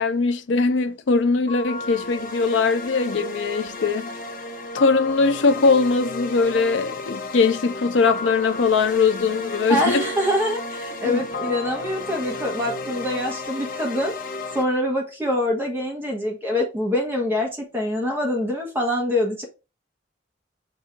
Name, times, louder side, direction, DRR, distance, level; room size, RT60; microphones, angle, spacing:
voice 1, 0.0-4.1 4.7-10.1 11.0-11.3, left 4 dB, 80° left, 0.5 m, -21 dB
sound 1, 1.5-14.6, left 2 dB, 50° left, 0.9 m, -33 dB
voice 2, 9.7-14.1 14.5-19.4, left 1 dB, 10° right, 1.3 m, -25 dB
4.9 x 2.7 x 3.6 m
head